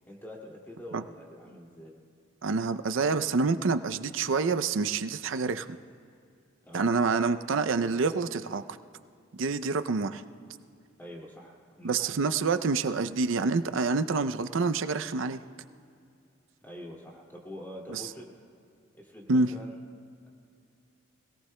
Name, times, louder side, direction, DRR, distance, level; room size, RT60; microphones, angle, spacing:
voice 1, 0.1-1.9 6.6-6.9 11.0-12.1 16.6-18.3 19.0-19.8 20.2-20.3, equal, 10° left, -3 dB, 2.3 m, -45 dB
voice 2, 2.4-5.8 6.7-8.6 9.4-10.2 11.8-15.4 17.9-18.0 19.3-19.5, right 4 dB, 75° right, 10 dB, 0.5 m, -27 dB
25.5 x 17.5 x 2.2 m, 2.4 s
head